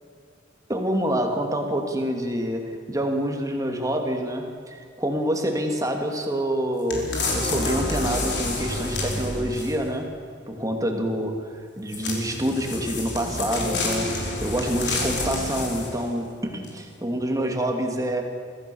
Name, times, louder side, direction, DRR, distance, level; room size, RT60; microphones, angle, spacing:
voice 1, 0.7-10.2 10.5-18.2, equal, 20° right, 3 dB, 2.6 m, -27 dB
sound 1, 6.9-9.9 11.9-16.1 16.6-16.7, left 2 dB, 65° left, 5.0 m, -28 dB
25.0 x 16.0 x 7.1 m, 2.3 s
head